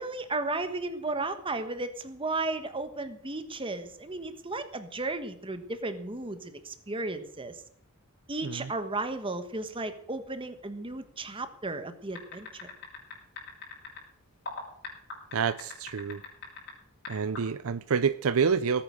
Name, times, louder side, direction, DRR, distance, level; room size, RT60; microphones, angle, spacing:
voice 1, 0.0-7.6 8.3-12.7, right 2 dB, 25° right, 9 dB, 1.4 m, -34 dB
sound 1, 12.1-14.0 14.5-16.7 17.0-17.4, left 4 dB, 50° left, 5.7 m, -40 dB
voice 2, 15.3-16.2 17.1-18.8, right 6 dB, 65° right, 14 dB, 0.5 m, -28 dB
18.5 x 8.9 x 6.4 m, 0.64 s
head